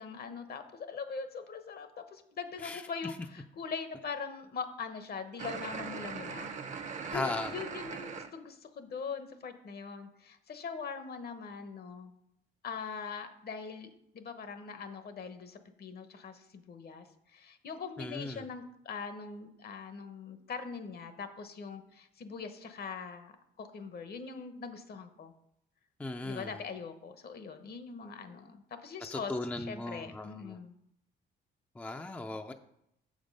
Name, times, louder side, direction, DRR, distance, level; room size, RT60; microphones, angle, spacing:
voice 1, 0.0-12.1 12.6-25.3 26.2-29.3 29.7-30.7, left 5 dB, 50° left, 9 dB, 0.9 m, -42 dB
voice 2, 2.6-3.1 7.1-7.5 18.0-18.5 26.0-26.6 29.1-30.6 31.8-32.5, left 2 dB, 10° left, 6 dB, 0.4 m, -37 dB
sound 1, 5.4-8.3, right 5 dB, 35° right, 0.7 m, -40 dB
7.0 x 5.2 x 5.3 m, 0.78 s
cardioid pair, 90°, 20 cm